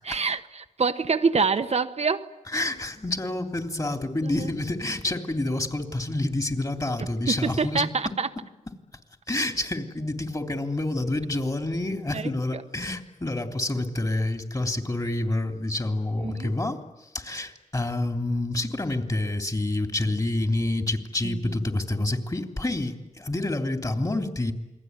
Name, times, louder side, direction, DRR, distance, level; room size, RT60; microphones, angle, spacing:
voice 1, 0.0-2.3 4.2-4.5 7.4-8.3 12.1-12.6 16.2-16.5 21.2-21.6, right 5 dB, 55° right, 1.1 m, -26 dB
voice 2, 2.5-7.9 9.3-24.5, left 2 dB, 30° left, 3.4 m, -28 dB
28.5 x 21.5 x 9.6 m
cardioid pair, 70°, 13 cm